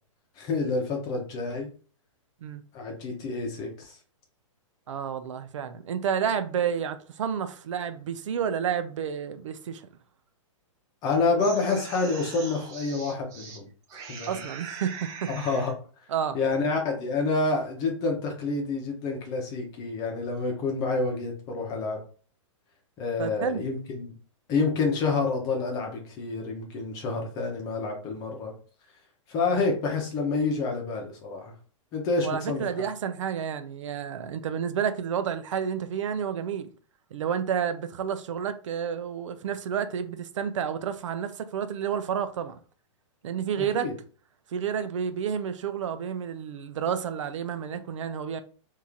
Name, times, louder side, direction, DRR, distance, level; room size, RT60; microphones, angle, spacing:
voice 1, 0.4-1.7 2.7-4.0 11.0-13.7 13.9-14.4 15.3-15.7 16.3-22.0 23.0-24.1 24.5-28.5 29.3-31.5 31.9-32.9 43.6-43.9, left 3 dB, 20° left, 0.9 m, -28 dB
voice 2, 4.9-9.8 14.3-15.3 16.1-16.4 23.2-23.6 29.5-29.7 32.2-36.7 37.1-42.6 43.2-43.9 44.5-48.4, right 8 dB, 70° right, 0.6 m, -30 dB
sound 1, 11.1-13.6 13.9-15.7, right 5 dB, 20° right, 0.6 m, -41 dB
3.0 x 2.8 x 3.8 m
hypercardioid pair, 160°, 17 cm